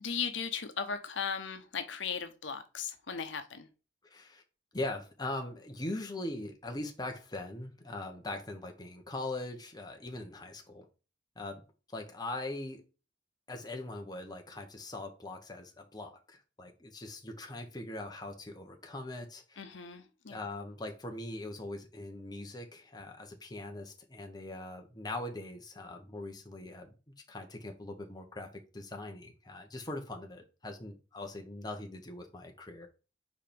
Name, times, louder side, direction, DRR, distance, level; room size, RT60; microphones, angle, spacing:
voice 1, 0.0-3.7 19.6-20.4, left 6 dB, 80° left, 8 dB, 0.9 m, -37 dB
voice 2, 4.0-4.4 4.7-10.9 11.4-11.6 11.9-12.8 13.5-19.6 20.3-27.0 27.3-32.9, left 2 dB, 20° left, 3 dB, 1.1 m, -41 dB
4.9 x 4.5 x 5.2 m, 0.33 s
head